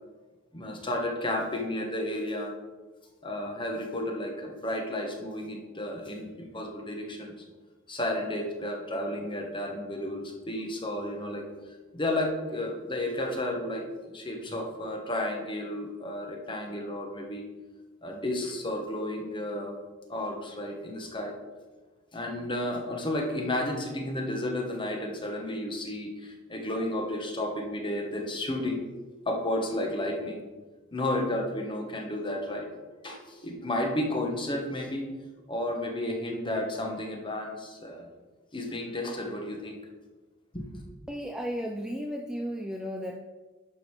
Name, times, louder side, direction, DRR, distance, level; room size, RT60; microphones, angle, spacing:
voice 1, 0.5-2.5 3.2-7.3 7.9-11.4 11.9-17.5 18.0-19.7 20.1-21.3 22.1-28.8 29.2-30.4 30.9-32.7 33.0-35.1 35.5-38.1 38.5-39.8 40.5-40.8, left 1 dB, 25° left, 1 dB, 1.4 m, -32 dB
voice 2, 41.1-43.3, equal, 5° right, 1 dB, 0.5 m, -34 dB
11.0 x 5.4 x 4.9 m, 1.3 s
head